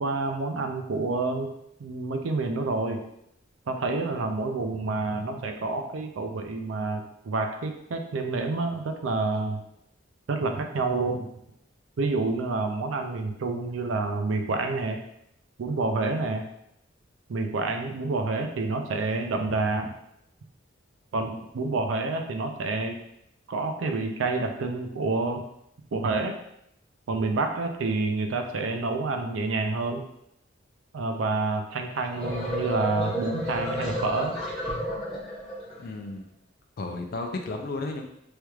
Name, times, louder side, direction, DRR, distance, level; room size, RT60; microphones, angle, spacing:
voice 1, 0.0-1.5 1.8-3.0 3.7-9.6 10.3-11.3 12.0-15.0 15.6-16.4 17.3-19.9 21.1-23.0 23.5-25.4 25.9-26.4 27.1-30.0 30.9-34.4, right 3 dB, 85° right, 5 dB, 0.4 m, -28 dB
sound 1, 31.9-35.8, equal, 5° left, 1.3 m, -32 dB
voice 2, 35.8-36.3 36.8-38.0, left 2 dB, 50° left, 4 dB, 0.4 m, -33 dB
3.3 x 3.0 x 2.3 m, 0.76 s
head